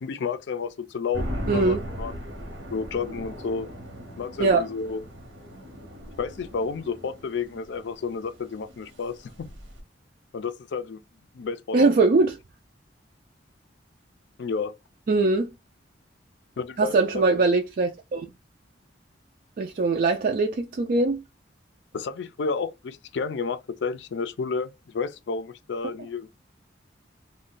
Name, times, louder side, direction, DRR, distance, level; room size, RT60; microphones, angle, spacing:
voice 1, 0.0-2.1 2.7-3.7 4.2-5.0 6.2-9.5 10.3-11.0 11.3-11.9 14.4-14.7 16.6-17.2 21.9-26.3, left 5 dB, 70° left, 0.4 m, -31 dB
sound 1, 1.1-9.8, equal, 70° right, 0.9 m, -38 dB
voice 2, 1.5-1.8 4.4-4.6 11.7-12.4 15.1-15.5 16.8-18.3 19.6-21.2, right 3 dB, 50° right, 0.4 m, -21 dB
2.5 x 2.2 x 3.7 m
head